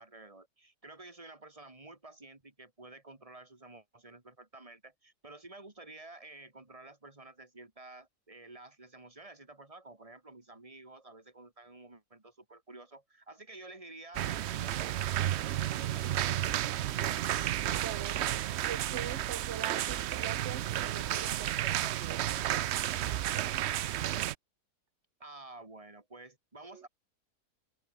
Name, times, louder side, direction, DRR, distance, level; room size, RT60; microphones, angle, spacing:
voice 1, 0.0-16.6 25.2-26.9, right 2 dB, 20° right, 2.7 m, -51 dB
sound 1, 14.1-24.3, right 12 dB, 70° right, 0.6 m, -32 dB
voice 2, 17.7-18.2 18.6-22.4 26.7-26.8, right 8 dB, 50° right, 1.3 m, -43 dB
omnidirectional pair, 1.7 m